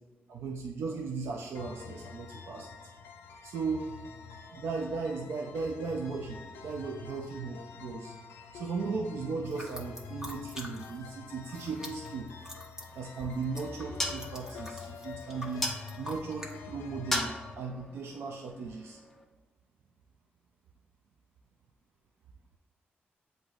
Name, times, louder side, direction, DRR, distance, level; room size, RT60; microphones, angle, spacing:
voice 1, 0.3-2.8 3.4-3.9 4.5-8.1 8.5-12.3 12.9-19.0, right 4 dB, 85° right, 1 dB, 0.4 m, -37 dB
sound 1, 1.5-17.5, left 5 dB, 90° left, 0.4 m, -46 dB
sound 2, 9.4-11.1 11.4-16.5, equal, 15° right, 1.0 m, -46 dB
sound 3, 12.8-19.2, left 1 dB, 5° left, 0.8 m, -39 dB
7.7 x 2.6 x 2.4 m, 1.1 s
cardioid pair, 65°, 4 cm